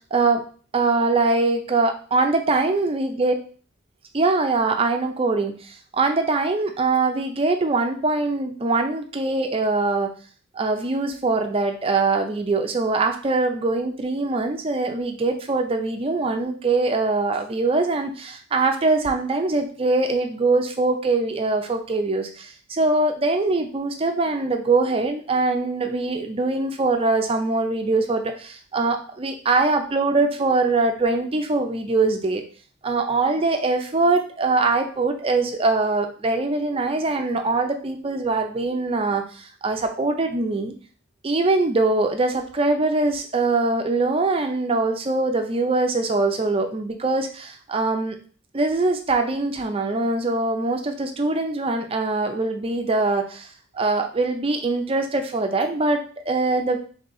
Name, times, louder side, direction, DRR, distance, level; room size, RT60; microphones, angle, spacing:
voice 1, 0.1-0.4 0.7-3.3 4.1-10.1 10.5-32.4 32.8-40.7 41.2-48.2 48.5-53.5 53.7-56.8, right 3 dB, 25° right, 5 dB, 0.4 m, -22 dB
3.9 x 3.3 x 3.7 m, 0.42 s
head